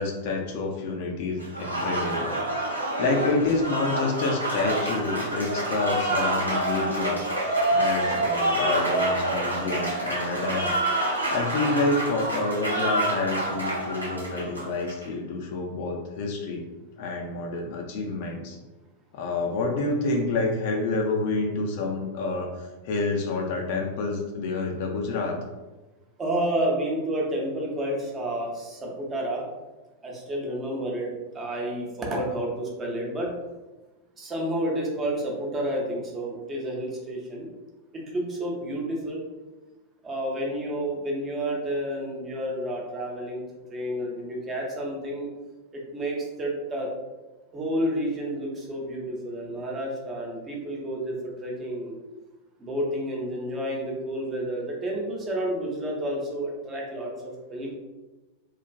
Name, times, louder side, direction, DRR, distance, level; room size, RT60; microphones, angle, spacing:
voice 1, 0.0-2.4 2.7-10.7 11.3-16.6 17.0-18.6 19.1-25.4, left 3 dB, 50° left, 1 dB, 0.4 m, -28 dB
Applause, 1.4-15.1, right 1 dB, 85° right, 0.4 m, -27 dB
voice 2, 26.2-29.4 30.0-33.3 34.2-37.5 37.9-39.2 40.0-43.4 43.7-45.3 45.7-46.9 47.5-52.0 52.6-57.7, right 1 dB, 20° right, -2 dB, 0.6 m, -30 dB
2.4 x 2.1 x 2.4 m, 1.1 s
figure-of-eight pair, 90°, 0 cm